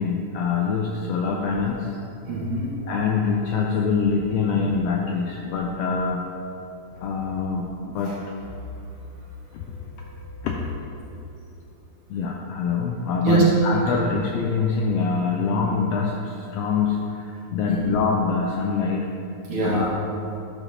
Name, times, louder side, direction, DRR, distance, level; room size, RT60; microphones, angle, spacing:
voice 1, 0.0-1.9 2.9-6.3 7.0-8.1 9.5-9.6 10.4-10.6 12.1-19.1 19.6-19.9, left 5 dB, 85° left, 0 dB, 1.4 m, -24 dB
voice 2, 2.3-2.8 8.0-8.2 9.6-10.3 13.2-13.4 13.9-14.0 17.7-17.8 19.5-19.9, right 3 dB, 55° right, -6 dB, 2.1 m, -25 dB
12.0 x 5.0 x 3.3 m, 2.8 s
omnidirectional pair, 3.4 m